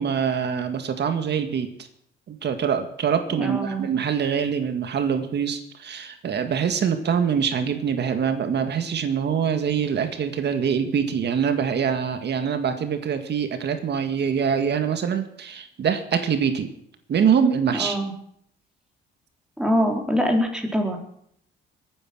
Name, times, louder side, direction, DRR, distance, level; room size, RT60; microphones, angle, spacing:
voice 1, 0.0-1.7 2.3-16.7 17.1-18.0, right 7 dB, 60° right, 7 dB, 1.9 m, -24 dB
voice 2, 3.3-3.8 17.7-18.1 19.6-21.0, equal, 5° right, 2 dB, 4.1 m, -24 dB
22.0 x 9.6 x 6.3 m, 0.70 s
cardioid pair, 90°, 20 cm